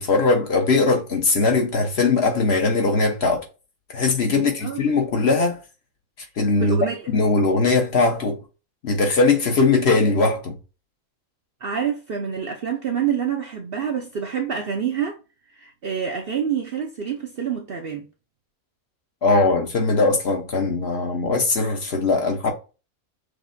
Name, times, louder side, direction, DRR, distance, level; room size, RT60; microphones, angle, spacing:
voice 1, 0.0-3.4 3.9-5.6 6.4-6.8 7.1-8.4 8.8-10.6 19.2-22.5, left 3 dB, 50° left, 1.0 m, -20 dB
voice 2, 4.3-4.8 6.6-7.0 11.6-15.2 15.5-18.1, right 7 dB, 55° right, 0.7 m, -27 dB
6.3 x 2.7 x 2.6 m
omnidirectional pair, 1.5 m